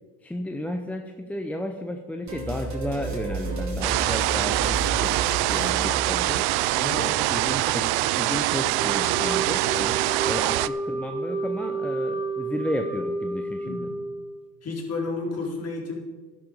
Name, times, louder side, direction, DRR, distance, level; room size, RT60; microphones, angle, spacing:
voice 1, 0.2-5.2 5.5-6.5 7.2-13.9, left 1 dB, 5° left, 5 dB, 0.7 m, -33 dB
sound 1, 2.3-6.6, right 2 dB, 35° right, 3.7 m, -32 dB
sound 2, 3.8-10.7, right 18 dB, 55° right, 0.6 m, -24 dB
voice 2, 6.8-7.2 13.6-14.0 14.6-16.0, left 3 dB, 30° left, -1 dB, 4.2 m, -31 dB
Wind instrument woodwind instrument, 8.8-14.4, right 2 dB, 10° right, 1.6 m, -31 dB
11.5 x 11.0 x 5.4 m, 1.4 s
supercardioid pair, 105°, 46 cm